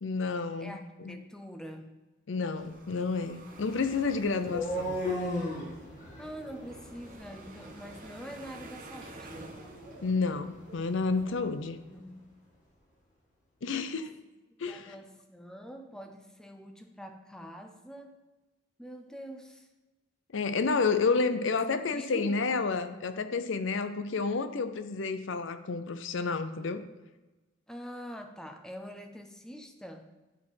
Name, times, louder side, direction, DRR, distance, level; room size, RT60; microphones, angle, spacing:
voice 1, 0.0-0.8 1.1-1.2 2.3-5.0 10.0-11.8 13.6-14.1 14.6-14.9 20.3-26.8, left 4 dB, 60° left, 10 dB, 0.6 m, -30 dB
voice 2, 0.6-2.0 6.2-9.6 11.9-12.3 13.7-14.0 14.7-18.3 18.8-19.7 20.9-21.0 21.3-21.5 21.9-22.5 27.7-30.1, equal, 5° left, 5 dB, 0.6 m, -45 dB
waves people talking portuguese, 2.5-11.6, right 2 dB, 40° right, 1.0 m, -51 dB
sound 1, 3.5-11.4, left 1 dB, 35° left, 1.8 m, -39 dB
11.5 x 4.3 x 5.6 m, 1.1 s
head